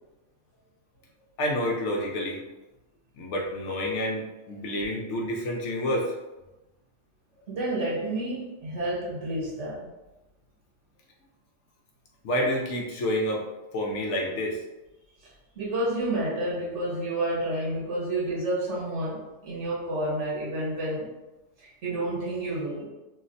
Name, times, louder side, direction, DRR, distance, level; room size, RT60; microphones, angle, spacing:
voice 1, 1.4-2.4 3.2-6.1 12.2-13.4 13.7-14.6, equal, 65° left, -1 dB, 0.9 m, -28 dB
voice 2, 7.4-9.9 15.6-21.1 21.6-22.9, right 1 dB, 65° right, -5 dB, 1.3 m, -30 dB
2.7 x 2.1 x 3.8 m, 1.0 s
omnidirectional pair, 1.4 m